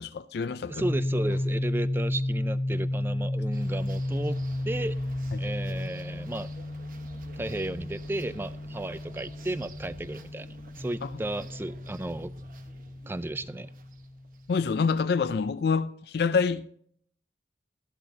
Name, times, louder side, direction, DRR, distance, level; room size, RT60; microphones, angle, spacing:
voice 1, 0.0-0.8 11.0-11.1 14.5-16.8, left 5 dB, 60° left, 0.4 m, -27 dB
voice 2, 0.7-5.0 5.4-6.5 7.4-12.3 13.1-13.7, right 1 dB, 10° right, 0.3 m, -34 dB
sound 1, 0.8-14.4, left 1 dB, 35° left, 0.9 m, -33 dB
sound 2, 3.5-14.6, right 2 dB, 50° right, 1.0 m, -49 dB
13.5 x 12.0 x 2.7 m
head